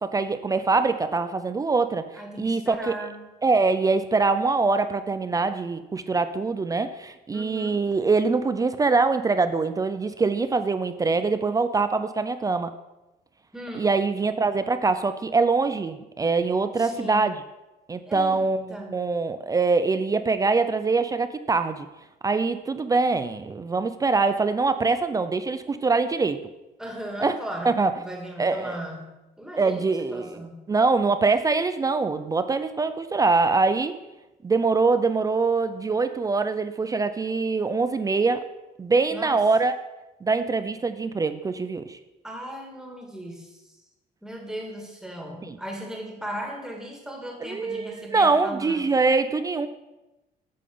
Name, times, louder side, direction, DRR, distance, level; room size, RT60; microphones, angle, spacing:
voice 1, 0.0-2.0 2.4-2.9 3.4-12.7 13.8-17.4 17.9-18.6 18.9-21.9 22.2-26.4 27.2-27.4 27.6-27.9 28.4-28.8 29.6-30.4 30.7-34.0 34.4-38.4 38.8-39.7 40.2-42.0 45.5-45.6 47.4-49.7, right 4 dB, 20° right, 10 dB, 0.4 m, -23 dB
voice 2, 2.1-3.2 7.3-7.8 13.5-13.9 16.8-17.3 18.1-18.4 18.7-18.9 26.8-30.7 39.1-39.5 42.2-43.8 44.2-48.8, right 1 dB, 5° right, 0 dB, 1.9 m, -37 dB
8.5 x 3.7 x 6.9 m, 1.0 s
cardioid pair, 110°, 17 cm